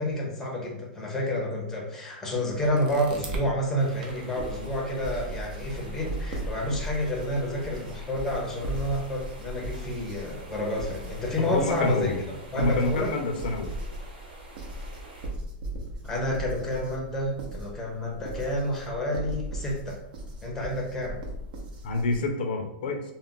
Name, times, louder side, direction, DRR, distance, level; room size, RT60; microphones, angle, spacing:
voice 1, 0.0-13.1 16.0-20.0 20.4-21.2, left 1 dB, 10° left, -2 dB, 0.6 m, -29 dB
sound 1, 2.5-3.5 4.0-22.2, right 1 dB, 60° right, 0.6 m, -38 dB
sound 2, 3.8-15.3, right 2 dB, 85° right, 1.1 m, -48 dB
voice 2, 11.4-12.2 12.5-13.8 21.8-23.0, left 2 dB, 70° left, 4 dB, 0.5 m, -27 dB
2.4 x 2.1 x 3.6 m, 0.81 s
supercardioid pair, 155°, 5 cm